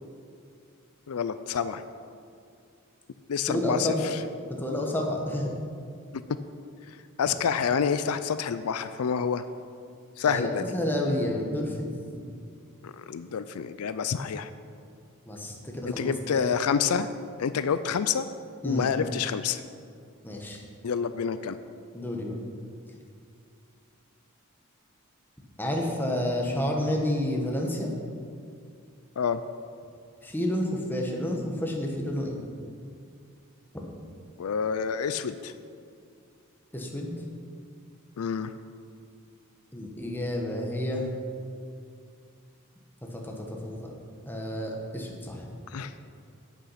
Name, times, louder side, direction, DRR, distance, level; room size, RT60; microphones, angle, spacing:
voice 1, 1.1-1.8 3.3-4.2 7.2-9.4 10.2-10.7 12.8-14.5 15.9-17.1 17.4-18.3 18.6-19.6 20.8-21.6 29.2-29.4 34.4-35.5 38.2-38.5 45.7-45.9, left 6 dB, 80° left, 12 dB, 0.4 m, -28 dB
voice 2, 3.5-4.1 4.5-5.5 10.3-11.9 15.2-16.5 18.6-18.8 20.2-20.6 21.9-22.3 25.6-27.9 30.2-32.4 36.7-37.1 39.7-41.1 43.1-43.9 44.3-45.5, left 1 dB, 10° left, 0 dB, 1.3 m, -30 dB
8.8 x 8.5 x 5.7 m, 2.3 s
head